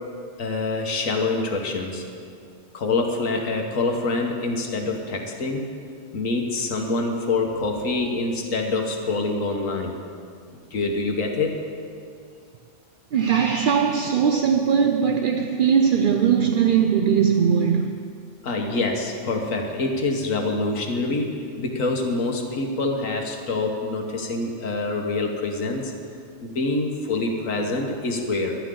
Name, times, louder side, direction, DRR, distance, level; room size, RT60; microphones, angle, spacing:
voice 1, 0.4-2.0 2.7-5.7 6.1-10.0 10.7-11.5 18.4-25.9 26.4-28.6, left 3 dB, 80° left, 1.7 m, -25 dB
voice 2, 13.1-18.1, right 7 dB, 60° right, 0.6 m, -20 dB
23.5 x 10.5 x 3.8 m
omnidirectional pair, 1.3 m